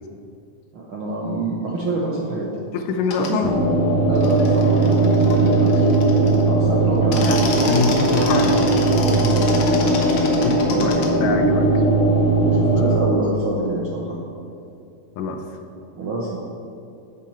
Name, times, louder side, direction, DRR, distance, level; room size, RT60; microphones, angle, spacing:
voice 1, 0.7-2.5 3.2-3.4 4.0-7.9 9.0-10.4 10.7-11.1 12.4-14.2 16.0-16.4, right 2 dB, 75° right, -3 dB, 1.2 m, -27 dB
voice 2, 2.7-3.5 7.2-8.9 10.4-11.7 15.2-15.4, left 4 dB, 75° left, 5 dB, 2.3 m, -24 dB
sound 1, 3.0-3.3 4.1-6.5 7.0-11.1, left 3 dB, 60° left, 1.8 m, -30 dB
sound 2, 3.4-13.0, right 2 dB, 5° right, 1.0 m, -18 dB
12.5 x 8.8 x 4.4 m, 2.6 s
omnidirectional pair, 4.0 m